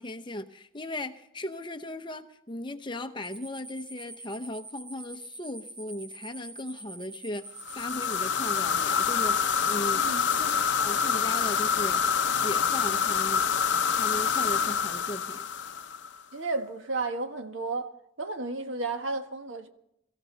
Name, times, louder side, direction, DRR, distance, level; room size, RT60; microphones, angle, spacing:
voice 1, 0.0-12.0 12.4-13.4 13.9-15.5, left 1 dB, 25° left, 0.8 m, -37 dB
sound 1, 3.2-9.8, right 2 dB, 55° right, 7.3 m, -45 dB
sound 2, 7.6-16.2, left 6 dB, 55° left, 0.6 m, -26 dB
voice 2, 16.3-17.9 18.2-19.7, right 3 dB, 70° right, 1.4 m, -32 dB
23.0 x 15.0 x 4.0 m
head